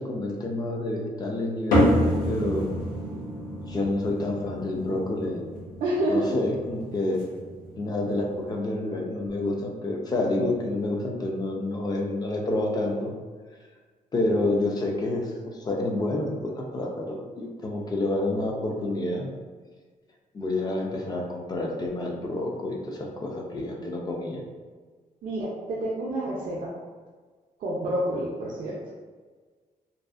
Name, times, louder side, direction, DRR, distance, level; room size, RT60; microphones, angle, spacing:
voice 1, 0.0-2.7 3.7-5.5 6.1-7.2 7.8-13.1 14.1-19.3 20.3-24.4, left 2 dB, 30° left, 0 dB, 0.4 m, -28 dB
sound 1, 1.7-8.4, equal, 85° left, 0.7 m, -28 dB
voice 2, 5.8-6.3 25.2-26.7 27.6-28.8, right 1 dB, 65° right, -5 dB, 0.5 m, -28 dB
2.6 x 2.4 x 2.3 m, 1.5 s
wide cardioid pair, 145°, 14 cm